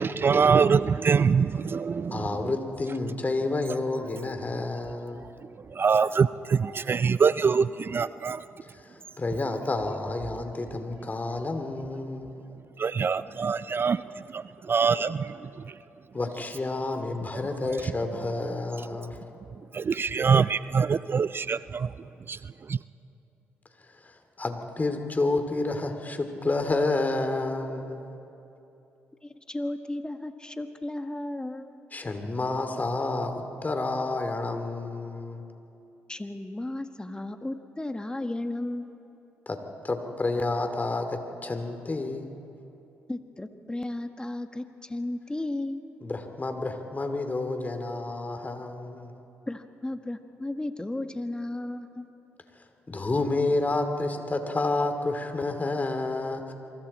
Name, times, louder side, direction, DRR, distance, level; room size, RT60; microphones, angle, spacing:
voice 1, 0.0-2.6 5.1-5.2 5.6-8.5 12.8-15.8 18.9-19.1 19.5-22.8, right 6 dB, 40° right, 16 dB, 0.4 m, -25 dB
voice 2, 2.1-5.3 8.8-12.4 16.1-19.2 23.9-28.1 31.9-35.5 39.5-39.6 39.8-42.3 46.0-49.2 52.9-56.5, left 2 dB, 30° left, 6 dB, 2.7 m, -30 dB
voice 3, 29.2-31.7 36.1-38.9 43.1-45.8 49.5-52.1, left 1 dB, 15° left, 7 dB, 1.5 m, -34 dB
27.0 x 23.5 x 4.3 m, 2.8 s
hypercardioid pair, 45°, 6 cm